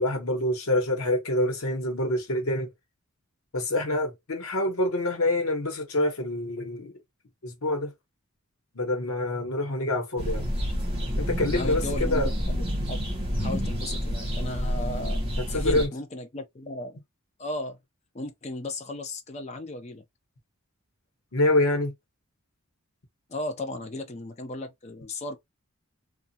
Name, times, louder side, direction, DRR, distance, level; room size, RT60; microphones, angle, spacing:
voice 1, 0.0-2.7 3.5-6.9 7.4-7.9 8.7-10.5 11.2-12.3 15.5-15.9 21.3-21.9, left 1 dB, 85° left, 1.1 m, -26 dB
sound 1, 10.2-15.9, equal, 25° right, 1.1 m, -28 dB
voice 2, 11.5-12.2 12.5-13.0 13.4-15.2 15.5-17.0 17.4-17.8 18.1-20.0 23.3-25.4, left 2 dB, 30° left, 0.5 m, -35 dB
2.6 x 2.4 x 2.7 m
head